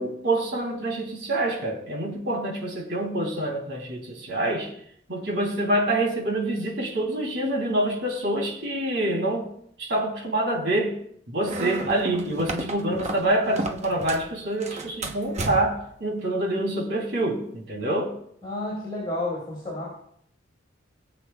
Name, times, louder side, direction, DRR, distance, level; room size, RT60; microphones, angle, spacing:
voice 1, 0.0-4.7 5.1-9.5 9.8-11.0 11.3-18.1, right 1 dB, 65° right, 3.3 m, -26 dB
sound 1, 11.4-14.3 14.6-15.9, right 2 dB, 35° right, 1.0 m, -33 dB
voice 2, 18.4-19.9, left 1 dB, 25° left, 4.8 m, -31 dB
21.5 x 7.7 x 2.4 m
head